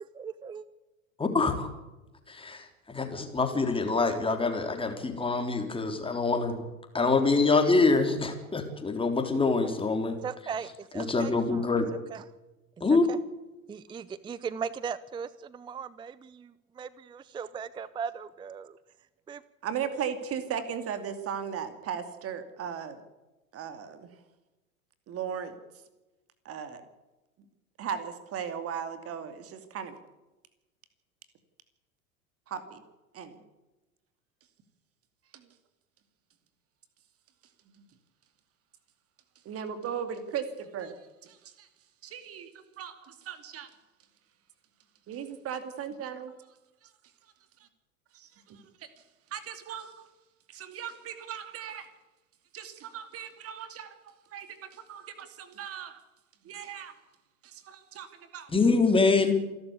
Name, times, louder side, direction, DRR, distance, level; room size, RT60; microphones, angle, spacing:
voice 1, 0.1-0.6 10.2-11.6 12.1-12.2 13.1-13.2 13.7-18.8 19.3-19.4, right 6 dB, 10° right, 19 dB, 0.6 m, -38 dB
voice 2, 1.2-1.7 2.3-6.6 6.9-10.2 10.9-11.9 12.8-13.1 58.5-59.3, left 3 dB, 10° left, 5 dB, 3.7 m, -25 dB
voice 3, 19.6-23.0 23.5-24.2 25.1-25.6 26.4-26.8 27.8-30.0 32.5-32.8 33.1-33.4 35.3-35.5 37.8-37.9 39.4-41.7 42.0-43.7 45.1-46.3 46.8-46.9 48.8-48.9 49.3-50.1 50.5-51.9 52.5-56.0 56.4-57.0 57.4-58.5, right 8 dB, 35° right, 10 dB, 2.5 m, -37 dB
27.5 x 12.5 x 8.2 m, 1.1 s
figure-of-eight pair, 80°, 42 cm